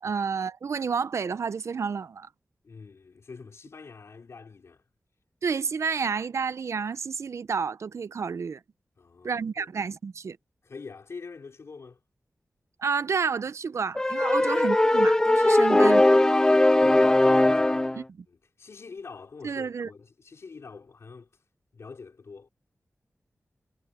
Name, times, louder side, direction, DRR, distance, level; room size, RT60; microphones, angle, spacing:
voice 1, 0.0-2.3 5.4-8.6 9.2-10.4 12.8-16.0 18.0-18.2 19.4-19.9, right 5 dB, 70° right, 0.7 m, -30 dB
voice 2, 2.6-4.8 9.0-9.7 10.6-12.0 16.5-21.4 21.7-22.5, left 4 dB, 65° left, 3.9 m, -46 dB
sound 1, 14.0-18.0, left 1 dB, 15° left, 0.3 m, -20 dB
wide cardioid pair, 100°, 5 cm